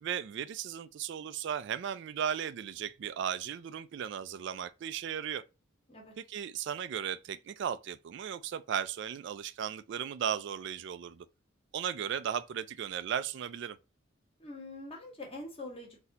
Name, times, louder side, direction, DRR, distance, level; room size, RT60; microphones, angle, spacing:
voice 1, 0.0-5.4 6.2-11.3 11.7-13.8, right 8 dB, 55° right, 0.3 m, -36 dB
voice 2, 14.4-16.0, left 2 dB, 30° left, 1.4 m, -44 dB
4.1 x 2.7 x 3.9 m
head